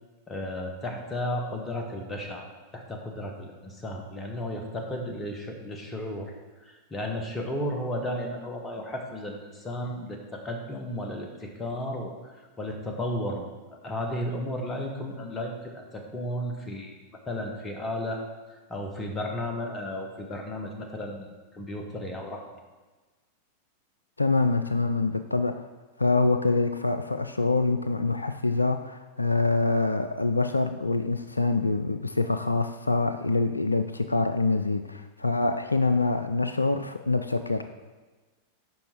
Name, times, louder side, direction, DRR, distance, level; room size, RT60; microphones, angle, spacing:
voice 1, 0.3-2.4 2.7-6.3 6.6-17.0 17.3-18.2 18.7-22.5, left 1 dB, 20° left, 2 dB, 1.4 m, -34 dB
voice 2, 24.2-25.6 26.0-37.7, left 3 dB, 80° left, 9 dB, 0.3 m, -25 dB
7.8 x 5.3 x 4.6 m, 1.3 s
figure-of-eight pair, 90°, 0 cm